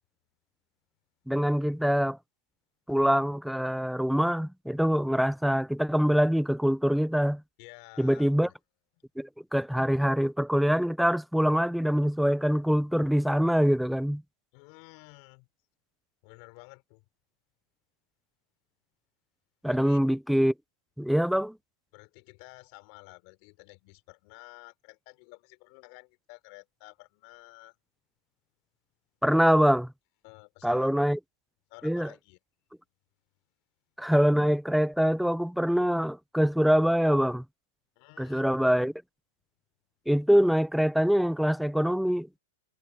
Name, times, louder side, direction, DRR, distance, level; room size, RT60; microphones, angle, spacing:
voice 1, 1.3-2.2 2.9-7.4 8.0-8.5 9.2-14.2 19.6-20.5 21.0-21.6 29.2-29.9 30.6-31.2 31.8-32.1 34.0-37.4 38.2-38.9 40.1-42.3, equal, ahead, 0.5 m, -24 dB
voice 2, 7.6-8.5 14.5-15.5 16.2-17.0 19.7-20.0 21.9-27.8 30.2-30.9 31.7-32.4 38.0-38.4, left 27 dB, 45° left, 3.7 m, -51 dB
hypercardioid pair, 145°, 0 cm